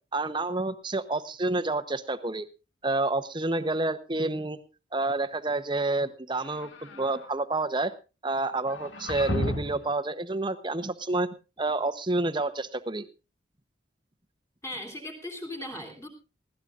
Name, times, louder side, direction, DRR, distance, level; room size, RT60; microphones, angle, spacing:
voice 1, 0.1-2.4 2.8-4.6 4.9-7.9 8.2-11.3 11.6-13.0, right 2 dB, 25° right, 10 dB, 0.9 m, -29 dB
sound 1, 6.3-7.2 8.7-9.9, left 1 dB, 85° left, 1.9 m, -33 dB
voice 2, 14.6-16.1, left 1 dB, 15° left, 2 dB, 3.4 m, -38 dB
20.5 x 16.5 x 2.5 m, 0.31 s
head